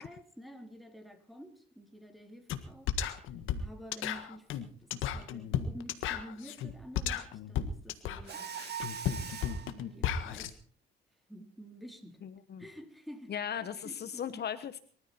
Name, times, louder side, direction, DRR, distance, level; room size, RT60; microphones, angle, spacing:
voice 1, 0.0-3.0 3.6-4.5 4.8-8.5 9.7-10.6 11.3-12.2 12.6-13.3 13.8-14.4, equal, ahead, 3 dB, 3.9 m, -49 dB
sound 1, 2.5-2.6 2.9-10.5, left 9 dB, 85° left, 1.7 m, -34 dB
Mechanisms, 8.3-9.7, right 7 dB, 55° right, 2.4 m, -40 dB
voice 2, 12.2-12.6 13.3-14.8, left 8 dB, 55° left, 12 dB, 1.1 m, -37 dB
23.5 x 13.5 x 4.5 m, 0.42 s
cardioid pair, 90°, 20 cm